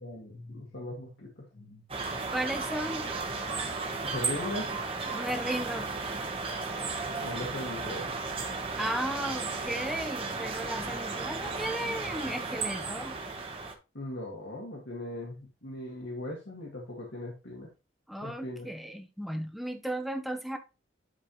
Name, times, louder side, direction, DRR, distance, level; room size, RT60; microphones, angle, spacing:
voice 1, 0.0-1.8 4.0-4.7 7.2-8.2 13.9-17.7 18.2-18.7, left 1 dB, 75° left, 1.9 m, -39 dB
sound 1, 1.9-13.7, right 4 dB, 30° right, 1.2 m, -34 dB
voice 2, 2.3-3.1 5.1-5.9 8.8-13.2 18.1-20.6, right 1 dB, ahead, 0.8 m, -35 dB
11.0 x 4.2 x 3.1 m
head